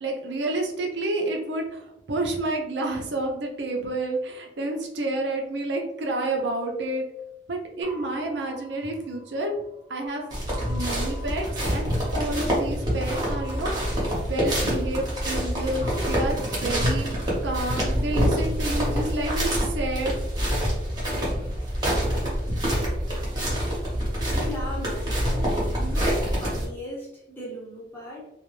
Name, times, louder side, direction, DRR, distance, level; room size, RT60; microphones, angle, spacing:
voice 1, 0.0-7.0 7.5-9.5 9.9-10.2 10.7-17.1 17.4-20.2, right 2 dB, 80° right, 1 dB, 0.5 m, -29 dB
sound 1, 7.8-9.9 10.5-12.6 13.1-15.4 15.8-17.9, left 1 dB, 60° left, 0.8 m, -45 dB
sound 2, 10.3-26.7, equal, 25° right, 0.9 m, -26 dB
voice 2, 24.3-28.3, equal, 10° left, -4 dB, 0.8 m, -38 dB
2.3 x 2.2 x 3.0 m, 0.87 s
head